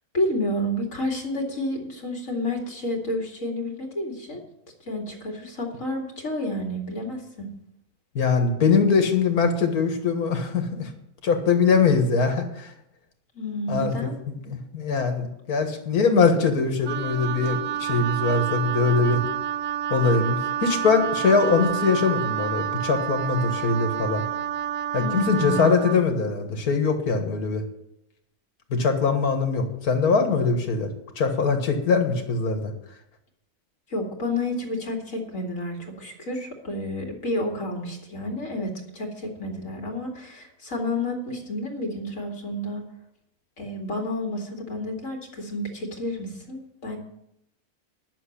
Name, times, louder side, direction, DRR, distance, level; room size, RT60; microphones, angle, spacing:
voice 1, 0.1-4.4 4.9-7.5 13.3-14.2 25.0-25.7 33.9-42.8 43.6-47.0, left 1 dB, 60° left, 2 dB, 2.6 m, -30 dB
voice 2, 8.2-10.9 11.2-12.7 13.7-13.9 14.3-19.2 19.9-24.2 24.9-27.6 28.7-30.9 31.2-32.6, left 4 dB, 85° left, 5 dB, 2.1 m, -22 dB
Wind instrument woodwind instrument, 16.8-26.0, right 10 dB, 70° right, 0.9 m, -29 dB
11.0 x 6.9 x 8.4 m, 0.80 s
omnidirectional pair, 1.5 m